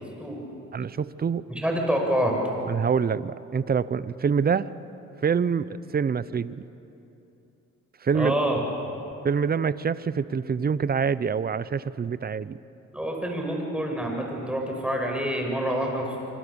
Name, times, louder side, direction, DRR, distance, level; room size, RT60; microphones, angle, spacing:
voice 1, 0.7-1.4 2.7-4.7 5.2-6.5 8.0-8.3 9.2-12.6, right 6 dB, 30° right, 16 dB, 0.7 m, -25 dB
voice 2, 1.5-2.3 8.1-8.6 12.9-16.2, right 1 dB, 5° right, 1 dB, 6.4 m, -27 dB
26.0 x 25.5 x 7.1 m, 2.9 s
cardioid pair, 90°, 30 cm